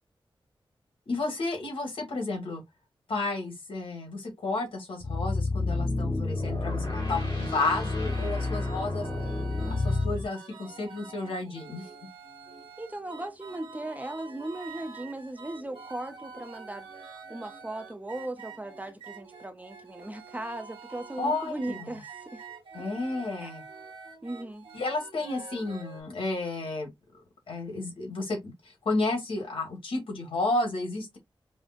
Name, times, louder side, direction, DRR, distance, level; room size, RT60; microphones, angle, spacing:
voice 1, 1.1-2.6 3.1-9.1 9.7-11.9 21.2-21.9 22.7-23.6 24.7-26.9 27.5-31.2, left 2 dB, 85° left, 1.6 m, -32 dB
sound 1, 5.0-10.3, left 2 dB, 60° left, 2.2 m, -29 dB
sound 2, 7.1-26.0, right 5 dB, 85° right, 1.1 m, -47 dB
voice 2, 12.8-16.9 17.3-22.4 22.8-22.9 23.4-23.5 24.2-24.7, right 1 dB, 15° right, 0.6 m, -37 dB
5.0 x 2.1 x 2.4 m
wide cardioid pair, 115°, 9 cm